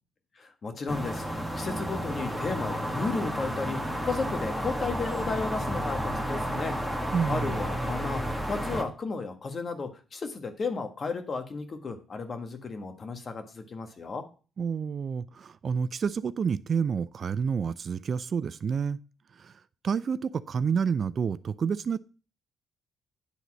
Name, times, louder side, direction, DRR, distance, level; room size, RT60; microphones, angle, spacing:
voice 1, 0.3-14.2, left 4 dB, 45° left, 1.5 m, -34 dB
sound 1, 0.9-8.8, equal, 5° left, 1.5 m, -31 dB
voice 2, 7.1-7.6 14.6-19.0 19.3-19.5 19.8-22.0, right 6 dB, 50° right, 0.4 m, -29 dB
9.9 x 4.0 x 6.2 m
cardioid pair, 90°, 0 cm